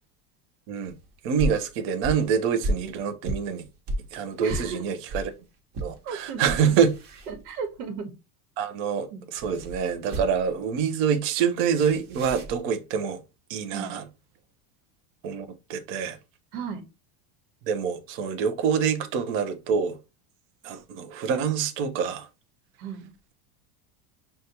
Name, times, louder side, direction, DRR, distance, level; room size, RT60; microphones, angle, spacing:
sound 1, 0.9-5.3 5.7-6.0 6.3-7.8 9.4-10.6 11.8-12.6, right 1 dB, 45° right, 1.1 m, -33 dB
voice 1, 1.2-3.6 4.1-5.3 5.8-6.9 8.6-13.2 13.5-14.0 15.2-16.2 17.7-20.0 20.6-22.3, right 7 dB, 30° right, 0.4 m, -26 dB
voice 2, 4.4-4.8 6.0-6.8 7.3-8.2 9.1-9.2 13.7-14.0 16.5-16.9 22.8-23.1, right 5 dB, 80° right, 1.1 m, -35 dB
6.3 x 2.2 x 2.8 m
supercardioid pair, 165°, 45 cm